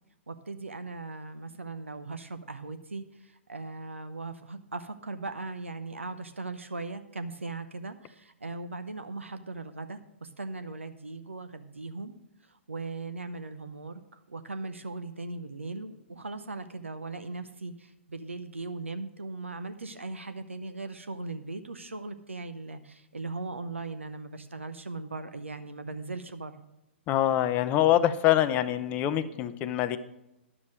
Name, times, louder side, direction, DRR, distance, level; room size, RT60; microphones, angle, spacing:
voice 1, 0.3-12.1 12.4-26.6, right 3 dB, 75° right, 10 dB, 0.7 m, -39 dB
voice 2, 27.1-30.0, left 12 dB, 25° left, 12 dB, 0.6 m, -25 dB
11.0 x 7.3 x 6.2 m, 0.89 s
figure-of-eight pair, 120°, 7 cm